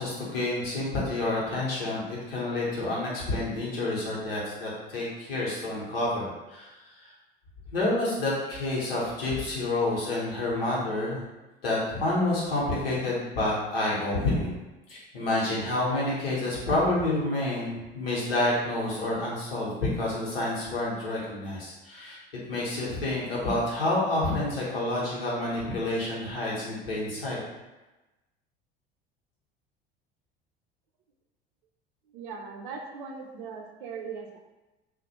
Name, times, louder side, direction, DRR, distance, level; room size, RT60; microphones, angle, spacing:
voice 1, 0.0-6.7 7.0-7.1 7.7-11.2 11.6-14.5 14.9-22.2 22.5-27.4, left 2 dB, 70° left, -6 dB, 0.9 m, -28 dB
voice 2, 32.1-34.4, right 5 dB, 60° right, 1 dB, 0.5 m, -39 dB
2.4 x 2.1 x 2.7 m, 1.1 s
figure-of-eight pair, 65°, 30 cm